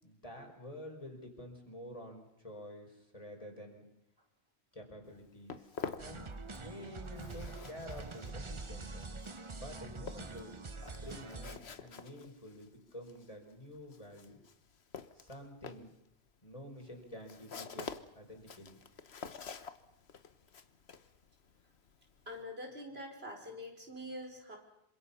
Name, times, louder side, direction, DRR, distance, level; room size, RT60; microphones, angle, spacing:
voice 1, 0.0-3.8 4.7-5.7 6.0-6.3 6.5-9.1 9.5-10.5 10.9-14.4 15.1-15.9 16.4-18.8, left 1 dB, 35° left, 2 dB, 4.9 m, -49 dB
Walk footsteps, 5.0-6.8 7.0-22.4, left 6 dB, 85° left, 1.4 m, -48 dB
sound 1, 6.0-11.6, right 3 dB, 30° right, 0.9 m, -45 dB
voice 2, 22.3-24.6, left 1 dB, 75° right, 1 dB, 5.0 m, -45 dB
26.5 x 25.0 x 5.6 m, 0.83 s
omnidirectional pair, 1.1 m